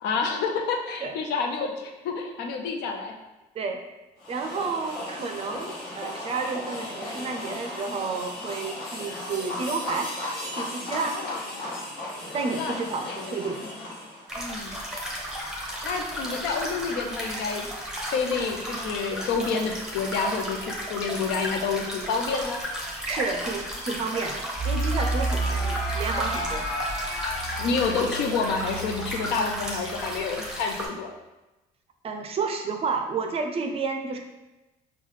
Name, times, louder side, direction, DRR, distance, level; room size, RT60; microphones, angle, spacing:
voice 1, 0.0-3.1 11.0-11.8 12.5-12.8 13.1-13.7 14.4-14.8 15.8-17.7 18.1-22.6 27.6-31.1, left 5 dB, 85° left, 3 dB, 0.5 m, -29 dB
sound 1, 4.2-14.3, left 1 dB, 60° left, 1.3 m, -36 dB
voice 2, 4.3-10.1 10.5-11.2 12.3-13.6 23.1-26.7 32.0-34.2, right 4 dB, 35° right, 4 dB, 0.4 m, -31 dB
sound 2, 14.3-30.9, equal, 5° right, 0.7 m, -34 dB
sound 3, 24.5-30.5, right 1 dB, 40° left, 1.1 m, -30 dB
3.8 x 2.3 x 3.1 m, 1.0 s
cardioid pair, 110°, 17 cm